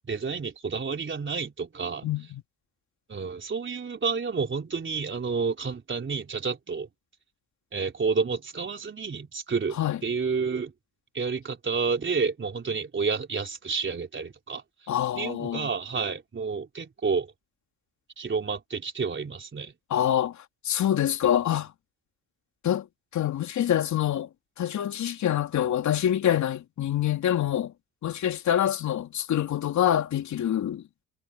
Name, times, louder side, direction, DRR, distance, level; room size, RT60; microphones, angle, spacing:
voice 1, 0.0-2.1 3.1-6.9 7.7-10.7 11.1-14.6 15.2-17.3 18.2-19.7, right 5 dB, 35° right, 4.0 m, -30 dB
voice 2, 2.0-2.4 9.8-10.0 14.9-15.7 19.9-21.7 22.6-22.9 23.1-24.3 24.6-27.7 28.0-30.8, left 11 dB, 60° left, 3.5 m, -26 dB
supercardioid pair, 60°, 32 cm